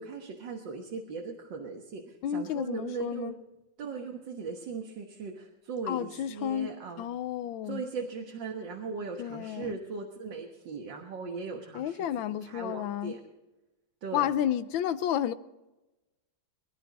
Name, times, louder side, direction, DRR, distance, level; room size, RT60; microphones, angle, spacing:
voice 1, 0.0-3.3 3.8-7.1 7.7-12.1 12.4-13.2 14.0-14.3, right 4 dB, 70° right, 2.1 m, -38 dB
voice 2, 2.2-3.3 5.9-6.7 7.0-7.8 9.2-9.8 11.7-13.2 14.1-15.3, left 10 dB, 90° left, 1.5 m, -31 dB
23.0 x 11.5 x 4.1 m
omnidirectional pair, 2.1 m